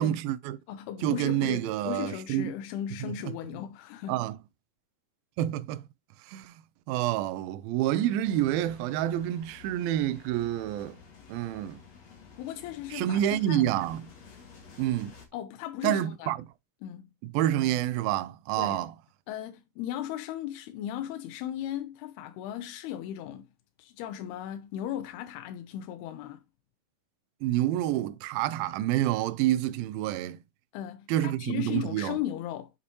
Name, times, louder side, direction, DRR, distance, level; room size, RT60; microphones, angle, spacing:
voice 1, 0.0-0.6 1.0-2.5 3.0-3.3 4.1-4.4 5.4-5.9 6.3-6.5 6.9-11.0 11.3-11.8 12.9-14.1 14.8-15.1 15.8-16.4 17.2-18.9 27.4-30.4 31.1-32.2, right 13 dB, 80° right, 2.3 m, -28 dB
voice 2, 0.7-4.2 12.4-13.7 15.3-16.4 16.8-17.0 18.6-18.8 19.3-23.4 23.8-26.4 30.7-32.7, left 11 dB, 90° left, 2.7 m, -36 dB
sound 1, 8.2-15.3, left 6 dB, 50° left, 2.7 m, -52 dB
8.3 x 5.6 x 3.0 m
omnidirectional pair, 4.5 m